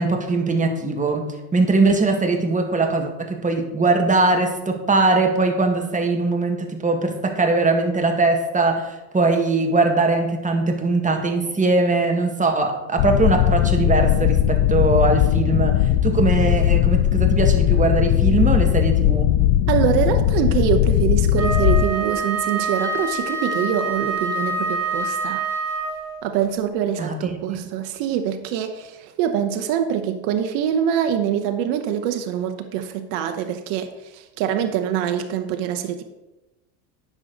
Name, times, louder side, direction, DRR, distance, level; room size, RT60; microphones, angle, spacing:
voice 1, 0.0-19.3 27.0-27.3, right 3 dB, 15° right, 3 dB, 1.7 m, -21 dB
sound 1, 13.0-21.9, left 12 dB, 60° left, 0.7 m, -18 dB
voice 2, 19.7-25.4 26.2-36.0, right 9 dB, 65° right, 7 dB, 1.0 m, -24 dB
Wind instrument woodwind instrument, 21.3-26.2, right 3 dB, 35° right, 2.5 m, -26 dB
9.8 x 6.5 x 4.0 m, 1.0 s
hypercardioid pair, 85°, 47 cm